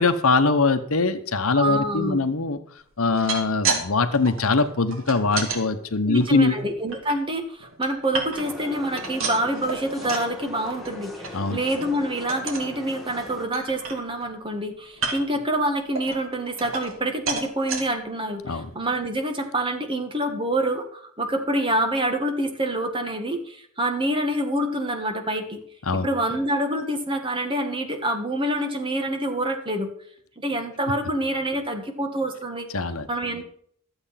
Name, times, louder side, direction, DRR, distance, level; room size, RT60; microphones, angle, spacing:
voice 1, 0.0-2.6 3.0-6.6 11.3-11.6 18.4-18.7 25.9-26.1 32.7-33.1, left 3 dB, 75° left, 10 dB, 1.0 m, -22 dB
voice 2, 1.5-2.2 6.1-25.6 25.9-29.9 30.4-32.7 33.1-33.5, right 1 dB, 25° right, 5 dB, 1.6 m, -26 dB
sound 1, 3.0-3.8 4.1-5.6 6.1-7.1 7.6-8.6 8.9-10.3 10.7-10.9 11.2-11.3 11.7-11.9 12.3-12.7 13.2-13.3 13.5-14.3 14.9-15.4 15.9-17.0 17.3-17.8 18.4-18.5 18.8-18.9, right 4 dB, 65° right, 2.4 m, -30 dB
sound 2, 8.4-13.5, left 1 dB, ahead, 1.8 m, -39 dB
12.5 x 7.9 x 5.8 m, 0.62 s
head